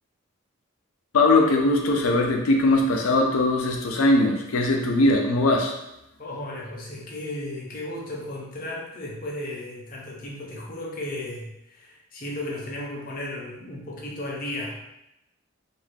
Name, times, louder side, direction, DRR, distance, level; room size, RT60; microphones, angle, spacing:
voice 1, 1.1-5.7, left 2 dB, 90° left, 1 dB, 0.5 m, -20 dB
voice 2, 6.2-14.8, left 1 dB, 40° left, -3 dB, 0.6 m, -35 dB
2.5 x 2.3 x 3.2 m, 0.86 s
head